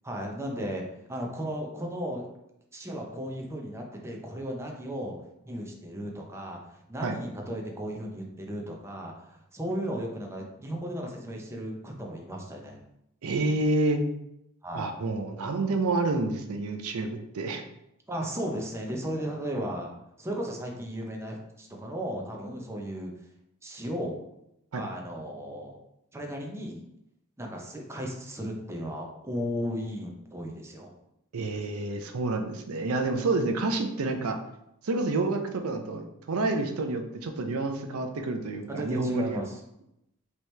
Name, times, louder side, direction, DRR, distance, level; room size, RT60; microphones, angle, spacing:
voice 1, 0.0-2.2 2.7-5.2 5.4-6.6 6.9-12.8 14.6-14.9 18.1-19.9 20.2-23.1 23.6-24.2 24.7-25.8 26.1-26.8 27.4-30.9 38.7-39.6, equal, 15° right, 0 dB, 0.6 m, -35 dB
voice 2, 13.2-14.0 14.7-17.6 24.7-24.9 31.3-34.4 34.8-39.4, right 2 dB, 85° right, 5 dB, 0.5 m, -29 dB
4.6 x 2.9 x 3.2 m, 0.82 s
head